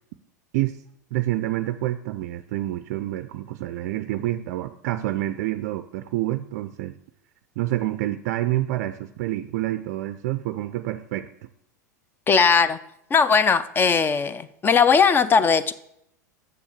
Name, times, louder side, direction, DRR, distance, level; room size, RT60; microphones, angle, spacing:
voice 1, 1.1-7.0 7.6-11.3, right 15 dB, 60° right, 11 dB, 0.4 m, -28 dB
voice 2, 12.3-12.8 13.1-15.7, left 6 dB, 20° left, 15 dB, 0.5 m, -19 dB
7.1 x 6.6 x 6.5 m, 0.77 s
hypercardioid pair, 95°, 10 cm